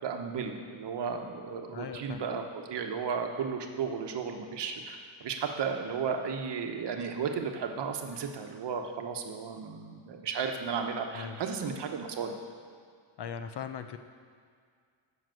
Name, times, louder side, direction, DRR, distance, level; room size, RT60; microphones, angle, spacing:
voice 1, 0.0-12.3, right 6 dB, 55° right, 4 dB, 1.0 m, -34 dB
voice 2, 1.7-2.2 11.1-11.4 13.2-14.0, left 7 dB, 55° left, 9 dB, 0.7 m, -39 dB
7.7 x 6.0 x 7.6 m, 2.1 s
cardioid pair, 120°, 49 cm